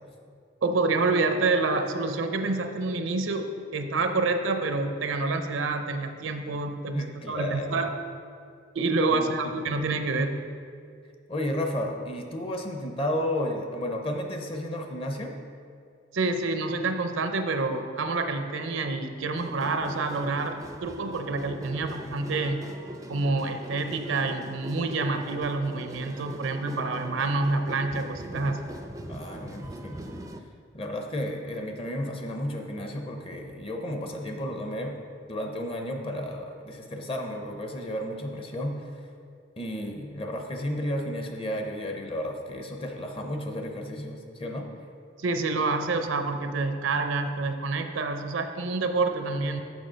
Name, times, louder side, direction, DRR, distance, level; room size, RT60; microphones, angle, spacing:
voice 1, 0.6-3.5 3.7-7.9 8.7-10.4 16.1-22.7 23.1-28.7 45.2-49.6, right 3 dB, 75° right, 7 dB, 0.6 m, -27 dB
voice 2, 6.9-7.8 9.1-9.3 9.6-9.8 11.3-15.3 29.1-30.0 30.7-35.0 35.3-39.0 39.6-44.7, left 1 dB, 30° left, 3 dB, 0.7 m, -33 dB
sound 1, 19.4-30.4, equal, 15° right, 0.4 m, -41 dB
6.8 x 6.3 x 5.1 m, 2.3 s
head